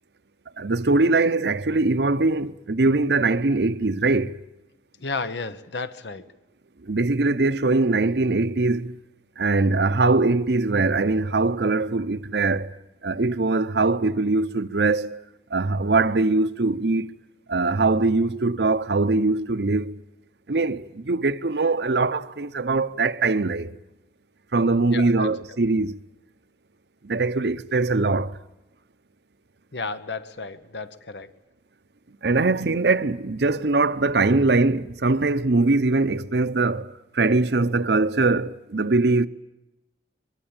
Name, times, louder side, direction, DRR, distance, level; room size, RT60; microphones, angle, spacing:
voice 1, 0.6-4.3 6.8-9.0 9.4-12.7 13.0-15.2 15.5-17.1 17.5-19.9 20.5-23.8 24.5-26.0 27.0-28.4 32.2-39.3, right 3 dB, 65° right, 0.8 m, -22 dB
voice 2, 5.0-6.3 24.9-25.4 29.7-31.3, left 4 dB, 80° left, 1.2 m, -33 dB
23.0 x 22.0 x 8.9 m
head